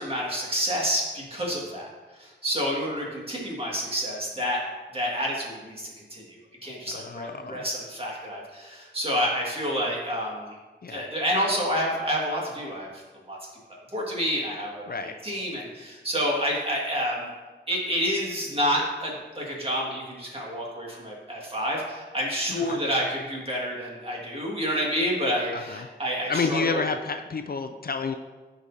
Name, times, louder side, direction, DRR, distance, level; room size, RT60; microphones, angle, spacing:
voice 1, 0.0-1.9 2.2-4.6 4.9-10.6 10.9-12.9 13.3-13.4 13.9-14.9 15.2-17.3 17.7-26.9, equal, 30° right, -3 dB, 1.9 m, -29 dB
voice 2, 6.9-7.7 10.8-11.1 14.9-15.1 22.5-22.8 25.5-25.9 26.3-28.2, left 4 dB, 55° left, 7 dB, 0.4 m, -30 dB
11.0 x 5.1 x 2.8 m, 1.3 s
wide cardioid pair, 60°, 19 cm